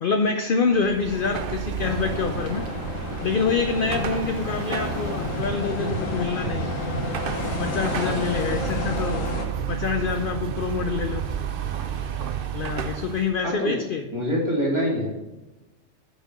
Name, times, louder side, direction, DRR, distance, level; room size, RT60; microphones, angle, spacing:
voice 1, 0.0-2.7 3.2-6.8 7.6-9.3 9.7-11.3 12.5-14.0, left 5 dB, 55° left, 7 dB, 0.6 m, -26 dB
Car passing by / Traffic noise roadway noise / Engine, 0.7-13.3, right 8 dB, 55° right, 0.7 m, -31 dB
sound 1, 1.8-9.5, left 4 dB, 90° left, 1.4 m, -31 dB
voice 2, 13.4-13.7 14.1-15.1, equal, 20° right, -4 dB, 2.4 m, -24 dB
6.5 x 5.0 x 6.4 m, 1.1 s
omnidirectional pair, 1.3 m